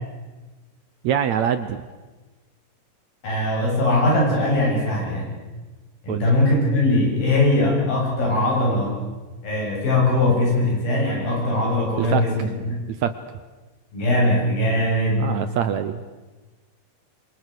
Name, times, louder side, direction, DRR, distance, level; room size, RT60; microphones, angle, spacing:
voice 1, 1.0-1.8 6.1-6.3 12.0-12.5 12.9-13.1 15.2-16.1, right 8 dB, 70° right, 11 dB, 1.9 m, -24 dB
voice 2, 3.2-5.3 6.0-9.0 9.4-12.8 13.9-15.3, left 1 dB, 80° left, -2 dB, 9.9 m, -21 dB
27.0 x 26.0 x 6.9 m, 1.2 s
omnidirectional pair, 4.1 m